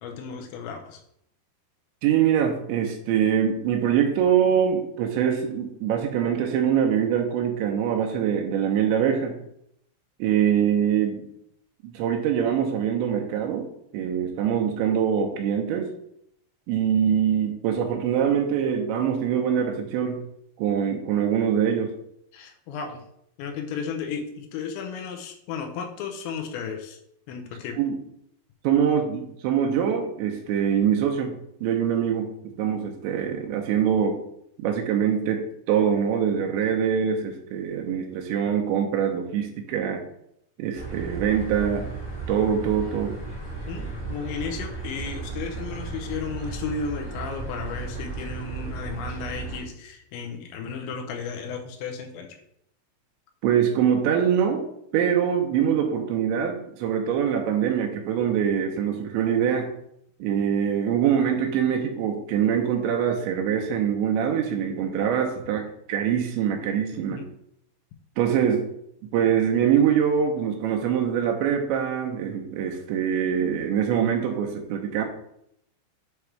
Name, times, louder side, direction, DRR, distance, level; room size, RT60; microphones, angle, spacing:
voice 1, 0.0-1.0 22.3-23.0 23.4-27.0 27.3-27.8 43.7-52.4 67.1-67.3, left 5 dB, 80° left, 3 dB, 2.9 m, -34 dB
voice 2, 2.0-9.3 10.2-11.3 11.8-13.7 13.9-15.9 16.7-20.2 20.6-21.9 27.8-28.0 28.6-31.3 31.6-32.3 32.6-34.2 34.6-40.0 40.6-41.9 42.3-43.2 53.4-54.6 54.9-59.7 60.2-67.2 68.2-68.7 69.1-75.1, right 8 dB, 80° right, 2 dB, 2.9 m, -24 dB
sound 1, 40.7-49.6, right 4 dB, 40° left, 1.8 m, -35 dB
7.7 x 3.4 x 4.6 m, 0.74 s
omnidirectional pair, 5.5 m